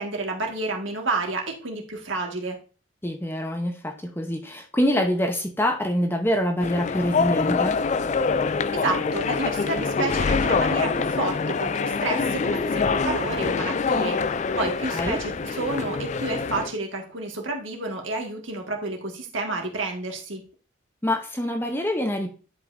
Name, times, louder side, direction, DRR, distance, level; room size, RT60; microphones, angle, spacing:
voice 1, 0.0-2.6 8.7-20.4, right 3 dB, 70° right, 2 dB, 1.9 m, -30 dB
voice 2, 3.0-7.8 14.9-15.2 21.0-22.3, equal, 10° left, 4 dB, 0.8 m, -25 dB
sound 1, 6.6-16.7, left 4 dB, 35° left, 0.3 m, -25 dB
11.0 x 5.4 x 2.6 m, 0.35 s
head